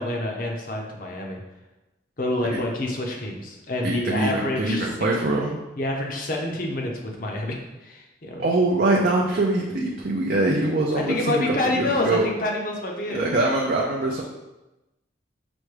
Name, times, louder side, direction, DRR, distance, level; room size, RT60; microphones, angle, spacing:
voice 1, 0.0-1.4 2.2-4.9 5.8-8.5 10.9-13.3, left 1 dB, 45° left, 0 dB, 0.7 m, -27 dB
voice 2, 3.8-5.6 8.4-12.2 13.1-14.2, right 2 dB, 50° right, -2 dB, 0.4 m, -23 dB
6.0 x 2.2 x 3.2 m, 1.0 s
head